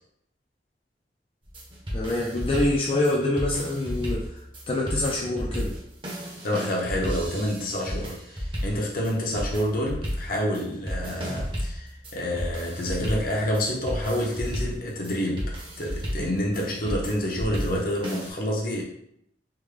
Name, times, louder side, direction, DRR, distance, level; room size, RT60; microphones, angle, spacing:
sound 1, 1.4-18.3, equal, 30° right, 0.8 m, -33 dB
voice 1, 1.9-5.7, left 2 dB, 35° left, -3 dB, 0.4 m, -26 dB
voice 2, 6.4-18.8, equal, 55° left, -2 dB, 0.8 m, -28 dB
3.5 x 2.2 x 3.2 m, 0.74 s
head